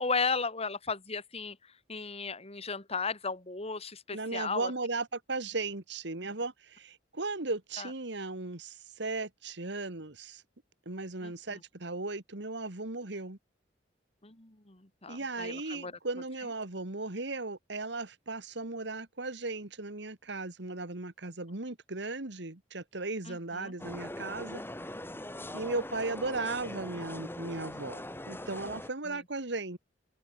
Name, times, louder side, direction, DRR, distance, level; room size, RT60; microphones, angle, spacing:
voice 1, 0.0-1.6 1.9-4.7 7.8-7.9 11.2-11.3 14.2-15.9 23.3-23.7 29.1-29.2, left 4 dB, 35° left, 3.3 m, -35 dB
voice 2, 4.1-10.4 10.9-13.4 15.1-24.6 25.5-29.8, right 3 dB, 70° right, 2.1 m, -36 dB
sound 1, 23.8-28.9, left 1 dB, 10° left, 3.9 m, -41 dB
head